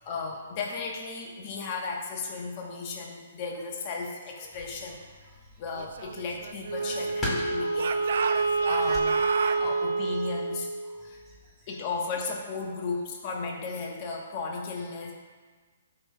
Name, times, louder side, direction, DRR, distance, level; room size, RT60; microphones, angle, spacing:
voice 1, 0.0-5.0 5.6-8.1 8.3-9.3 9.6-10.7 11.0-11.2 11.7-15.1, left 4 dB, 35° left, 0 dB, 1.1 m, -35 dB
sound 1, 4.5-9.9, left 1 dB, 15° left, 1.8 m, -41 dB
Speech / Shout, 5.8-7.3 7.7-9.6, right 6 dB, 65° right, 0.5 m, -33 dB
Wind instrument woodwind instrument, 6.7-11.1, right 3 dB, 90° right, 0.9 m, -28 dB
voice 2, 10.8-11.8 15.0-15.1, right 2 dB, 15° right, -5 dB, 1.9 m, -59 dB
13.5 x 5.5 x 2.3 m, 1.4 s
hypercardioid pair, 150°, 0 cm